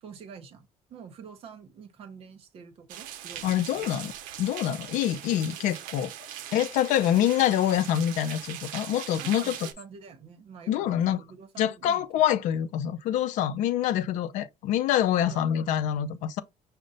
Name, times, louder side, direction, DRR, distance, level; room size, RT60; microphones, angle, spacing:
voice 1, 0.0-3.9 9.2-12.2 15.3-15.4, right 6 dB, 45° right, 0.9 m, -47 dB
sound 1, 2.9-9.7, right 11 dB, 85° right, 0.7 m, -40 dB
voice 2, 3.4-4.1 4.4-6.1 6.5-9.6 10.7-11.2 11.6-16.4, left 11 dB, 65° left, 0.5 m, -26 dB
5.3 x 2.1 x 3.8 m
cardioid pair, 175°, 14 cm